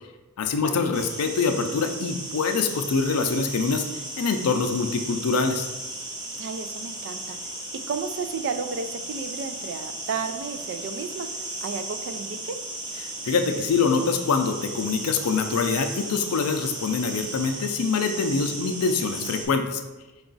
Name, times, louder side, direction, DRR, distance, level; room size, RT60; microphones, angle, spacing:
voice 1, 0.4-3.9 4.2-5.7 13.0-19.8, left 4 dB, 80° left, 7 dB, 0.4 m, -24 dB
sound 1, 0.9-19.5, right 2 dB, 20° right, 0.8 m, -36 dB
voice 2, 6.4-7.6 7.9-12.6, right 5 dB, 55° right, 8 dB, 0.4 m, -33 dB
4.8 x 2.3 x 3.9 m, 1.1 s
head